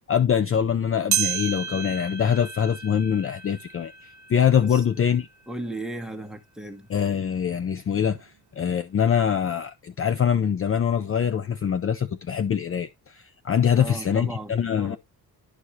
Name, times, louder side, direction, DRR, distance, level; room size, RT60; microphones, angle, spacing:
voice 1, 0.1-3.9 4.3-5.3 6.9-15.0, left 8 dB, 35° left, 0.6 m, -24 dB
sound 1, 1.1-5.8 6.3-6.4 7.2-7.3 8.2-8.3, right 9 dB, 50° right, 0.8 m, -32 dB
voice 2, 5.5-6.9 13.8-14.5 14.8-15.0, right 1 dB, ahead, 1.3 m, -35 dB
11.5 x 4.6 x 2.8 m
cardioid pair, 140°, 37 cm